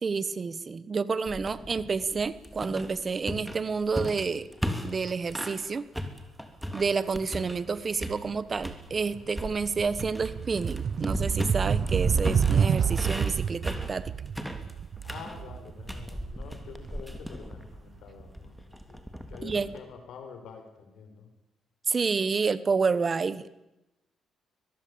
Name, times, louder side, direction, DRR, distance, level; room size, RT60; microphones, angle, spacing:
voice 1, 0.0-4.5 4.8-5.8 6.7-14.1 19.4-19.7 21.9-23.5, right 5 dB, 35° right, 17 dB, 1.3 m, -29 dB
sound 1, 1.3-5.6 5.9-7.7 8.0-8.8 9.3-19.8, equal, 5° right, 3.4 m, -36 dB
sound 2, 8.1-8.3 8.7-17.5, right 7 dB, 55° right, 0.9 m, -29 dB
voice 2, 15.0-19.0 19.3-21.3, left 6 dB, 80° left, 6 dB, 6.3 m, -47 dB
22.5 x 21.5 x 8.8 m, 0.94 s
cardioid pair, 90°, 0 cm